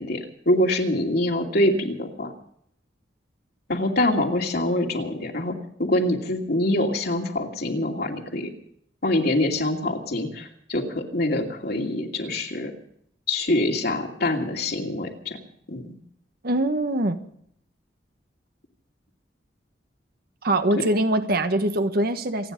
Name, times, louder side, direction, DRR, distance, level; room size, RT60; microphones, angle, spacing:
voice 1, 0.0-2.3 3.7-8.5 9.0-12.7 13.3-15.4 15.7-15.9, left 1 dB, 60° left, 1 dB, 2.8 m, -25 dB
voice 2, 16.4-17.2 20.4-22.5, right 1 dB, 55° right, 8 dB, 1.4 m, -23 dB
27.5 x 9.9 x 5.2 m, 0.66 s
head